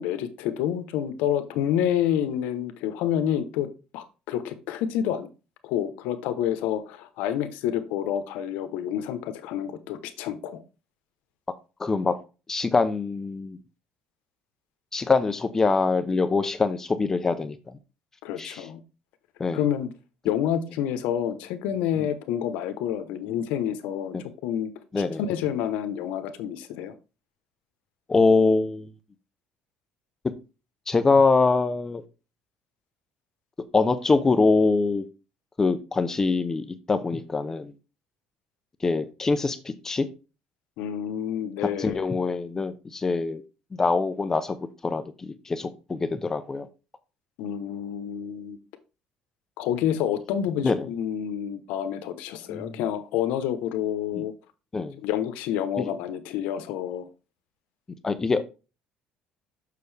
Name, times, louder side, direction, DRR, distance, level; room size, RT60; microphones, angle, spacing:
voice 1, 0.0-3.7 3.9-5.3 5.6-10.6 18.2-18.8 19.5-19.9 20.2-24.7 25.0-26.9 40.8-42.0 47.4-48.6 49.6-54.3 55.0-57.1, left 10 dB, 90° left, 1.0 m, -28 dB
voice 2, 11.8-12.2 12.5-13.6 14.9-17.6 18.4-18.6 19.4-19.6 24.9-25.2 28.1-28.9 30.9-32.0 33.7-35.0 35.6-37.7 38.8-40.1 41.6-43.4 43.7-44.6 44.8-46.7 50.6-50.9 52.5-52.8 54.1-54.2 54.7-55.0 55.8-55.9 58.0-58.4, left 3 dB, 20° left, 0.6 m, -24 dB
6.8 x 6.4 x 3.3 m
cardioid pair, 125°, 2 cm